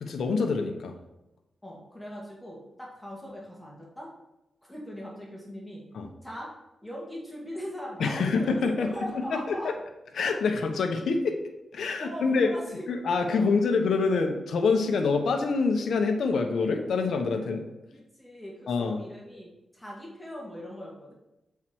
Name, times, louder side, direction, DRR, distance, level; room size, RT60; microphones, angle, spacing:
voice 1, 0.0-0.9 5.9-6.1 8.0-8.9 9.3-9.6 10.1-11.4 11.7-12.5 12.9-17.6 18.7-19.0, left 4 dB, 80° left, 4 dB, 1.0 m, -26 dB
voice 2, 1.6-4.1 4.7-5.8 6.2-6.5 6.8-9.7 12.0-13.0 13.3-13.6 17.9-21.1, equal, 5° left, -4 dB, 2.2 m, -40 dB
7.6 x 4.7 x 4.6 m, 0.94 s
cardioid pair, 75°, 0 cm